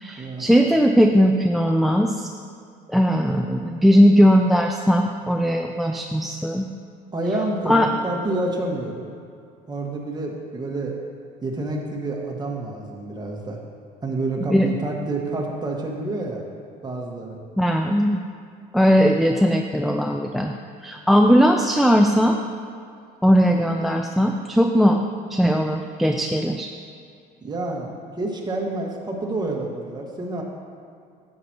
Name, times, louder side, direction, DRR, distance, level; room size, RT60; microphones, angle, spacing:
voice 1, 0.0-2.3 2.9-6.7 7.7-7.9 14.5-14.7 17.6-18.2 18.7-20.5 20.8-22.4 23.2-25.0 25.3-26.7, equal, ahead, 3 dB, 0.4 m, -18 dB
voice 2, 7.1-9.1 9.7-11.0 11.4-13.6 14.0-16.4 16.8-17.4 27.4-30.4, right 2 dB, 20° right, -1 dB, 1.6 m, -28 dB
10.5 x 7.8 x 2.9 m, 2.4 s
supercardioid pair, 85°, 19 cm